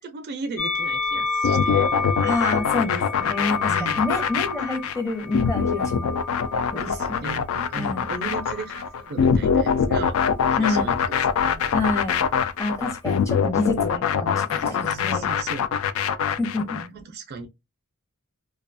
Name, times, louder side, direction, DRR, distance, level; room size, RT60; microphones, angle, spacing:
voice 1, 0.0-2.1 3.7-4.1 6.8-10.2 10.5-11.6 14.6-15.7 16.7-17.5, right 4 dB, 45° right, 0.4 m, -36 dB
Musical instrument, 0.6-7.0 7.8-8.8, left 3 dB, 85° left, 0.9 m, -30 dB
sound 1, 1.4-16.9, left 7 dB, 65° left, 0.3 m, -23 dB
voice 2, 2.2-6.2 6.7-6.8 7.1-7.2 7.8-8.0 10.6-10.9 11.7-12.2 12.6-15.2 16.3-16.8, left 2 dB, 15° left, 0.6 m, -28 dB
2.3 x 2.2 x 2.5 m
head